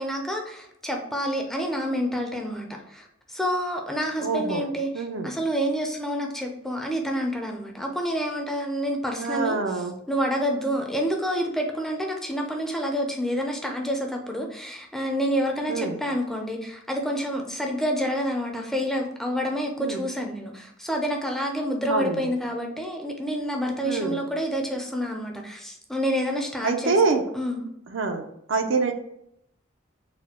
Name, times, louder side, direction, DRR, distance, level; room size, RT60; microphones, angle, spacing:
voice 1, 0.0-27.6, equal, ahead, 1 dB, 0.5 m, -28 dB
voice 2, 4.2-4.6 4.9-5.3 9.2-9.9 15.7-15.9 19.8-20.0 21.9-22.2 23.8-24.2 26.6-27.2 27.9-28.9, right 4 dB, 70° right, 5 dB, 0.5 m, -25 dB
4.1 x 2.2 x 4.1 m, 0.77 s
head